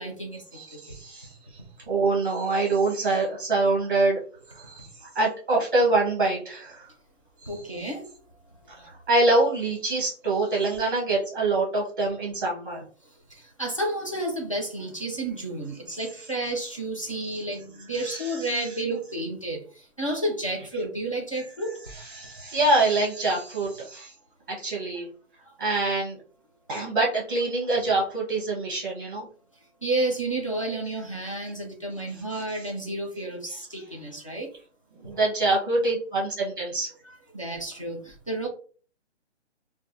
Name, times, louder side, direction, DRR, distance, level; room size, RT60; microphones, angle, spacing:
voice 1, 0.0-0.4 0.7-1.0 7.5-8.1 8.6-8.7 13.3-21.7 29.8-34.5 35.0-35.2 37.3-38.5, right 1 dB, 30° left, -1 dB, 0.5 m, -31 dB
voice 2, 0.5-1.4 1.9-4.2 4.5-6.9 7.4-7.5 8.7-12.8 18.0-18.7 22.1-24.1 24.5-25.1 25.6-26.2 26.7-29.3 32.6-32.7 35.0-36.9, right 2 dB, 20° right, -3 dB, 0.7 m, -25 dB
3.2 x 2.2 x 2.6 m, 0.42 s
hypercardioid pair, 180°, 36 cm